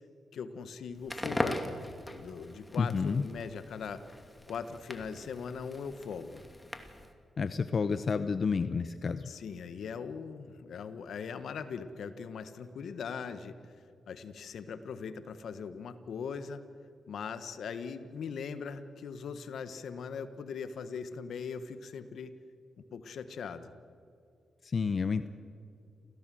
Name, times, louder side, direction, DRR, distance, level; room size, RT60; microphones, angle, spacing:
voice 1, 0.3-1.6 2.1-4.0 4.5-6.4 9.2-13.6 14.1-16.6 17.1-22.3 22.9-23.7, left 6 dB, 75° left, 11 dB, 1.5 m, -40 dB
Crackle, 1.0-7.1, left 1 dB, 10° left, 2.5 m, -40 dB
voice 2, 2.8-3.2 7.4-9.3 24.6-25.3, left 5 dB, 50° left, 11 dB, 0.8 m, -30 dB
28.0 x 16.5 x 7.8 m, 2.4 s
cardioid pair, 85°, 0 cm